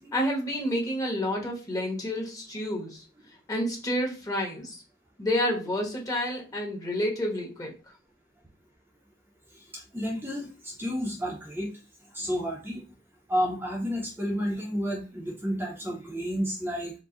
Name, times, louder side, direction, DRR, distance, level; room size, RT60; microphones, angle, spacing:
voice 1, 0.1-3.0 3.5-4.8 5.2-7.7, equal, 20° left, -1 dB, 1.2 m, -29 dB
voice 2, 9.9-11.7 12.1-12.8 13.3-16.9, equal, 10° right, -3 dB, 0.9 m, -31 dB
4.7 x 2.3 x 3.9 m, 0.33 s
head